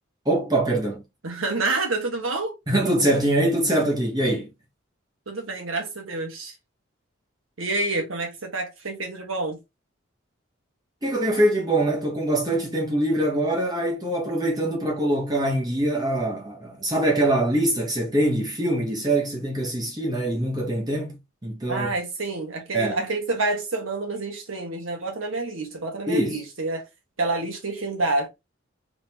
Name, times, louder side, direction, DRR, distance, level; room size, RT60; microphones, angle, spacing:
voice 1, 0.2-1.0 2.7-4.5 11.0-21.9 22.7-23.0 26.1-26.4, right 1 dB, 20° right, 1.1 m, -23 dB
voice 2, 1.2-2.5 5.3-6.5 7.6-9.6 21.7-26.8 27.2-28.3, right 2 dB, 90° right, 1.5 m, -28 dB
3.8 x 3.7 x 2.8 m
head